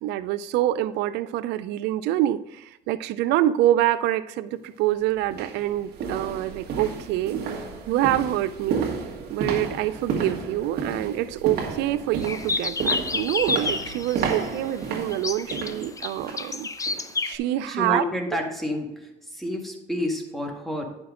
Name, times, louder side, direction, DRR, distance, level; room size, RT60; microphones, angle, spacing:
voice 1, 0.0-7.4 7.9-8.9 9.3-16.7 17.2-18.0, right 13 dB, 90° right, 15 dB, 0.4 m, -26 dB
sound 1, 4.5-4.7 5.2-16.5 16.9-17.1 17.5-17.6, right 5 dB, 70° right, 1.7 m, -32 dB
sound 2, 12.2-14.3 15.1-17.3, left 4 dB, 20° left, 0.5 m, -29 dB
voice 2, 17.7-20.9, equal, ahead, 0 dB, 1.9 m, -29 dB
10.5 x 6.1 x 3.7 m, 0.94 s
cardioid pair, 110°, 17 cm